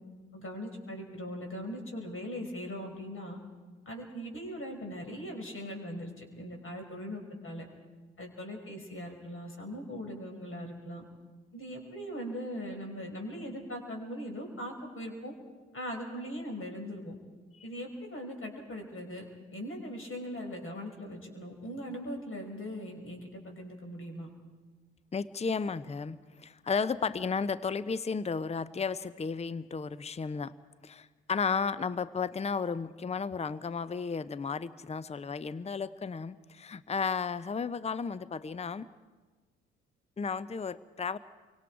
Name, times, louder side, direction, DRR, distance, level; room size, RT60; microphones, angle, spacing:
voice 1, 0.3-3.4 3.9-7.7 8.2-11.0 11.5-15.3 15.7-17.2 17.6-19.3 19.5-24.3, equal, 40° left, 2 dB, 5.4 m, -40 dB
voice 2, 25.1-30.5 30.8-38.9 40.2-41.2, left 5 dB, 20° left, 17 dB, 0.8 m, -33 dB
29.5 x 24.5 x 4.7 m, 1.4 s
figure-of-eight pair, 45°, 34 cm